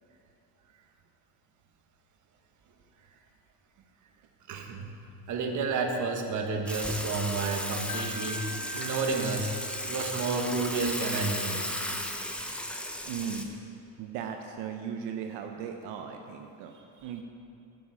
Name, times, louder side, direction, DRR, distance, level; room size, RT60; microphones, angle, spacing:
voice 1, 4.5-4.9 5.3-8.4 8.7-11.6 16.7-17.1, right 4 dB, 45° right, 3 dB, 1.4 m, -31 dB
Water / Water tap faucet / Sink (filling or washing), 6.7-13.4, left 1 dB, 5° left, 0.7 m, -35 dB
Wind chime, 7.9-11.0, right 1 dB, 45° left, 1.1 m, -43 dB
voice 2, 13.0-13.5 14.0-16.7 17.0-17.2, right 7 dB, 75° right, 4 dB, 0.8 m, -37 dB
12.0 x 8.8 x 5.0 m, 2.8 s
cardioid pair, 145°, 40 cm